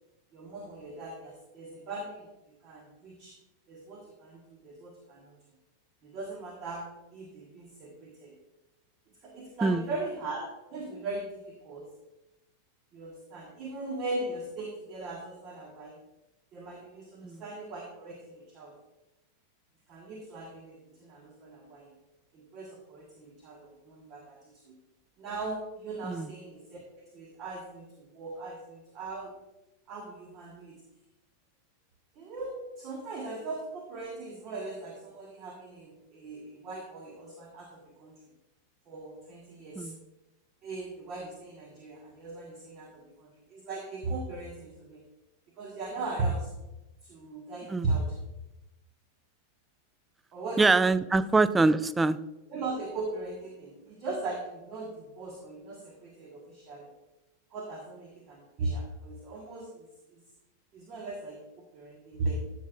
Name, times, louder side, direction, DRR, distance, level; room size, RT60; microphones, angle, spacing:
voice 1, 0.3-2.3 2.6-3.3 3.7-5.3 6.0-8.4 9.2-11.9 12.9-16.0 16.5-18.7 19.9-21.9 22.3-24.7 25.2-29.3 29.9-30.8 32.1-38.2 38.9-39.9 40.6-45.0 45.6-46.5 47.0-48.2 50.3-51.0 52.5-56.9 57.5-60.2 60.7-62.5, right 2 dB, 35° right, 1 dB, 1.3 m, -38 dB
voice 2, 50.6-52.2, right 3 dB, 10° right, 16 dB, 0.3 m, -24 dB
13.0 x 6.2 x 2.4 m, 0.96 s
figure-of-eight pair, 90°, 0 cm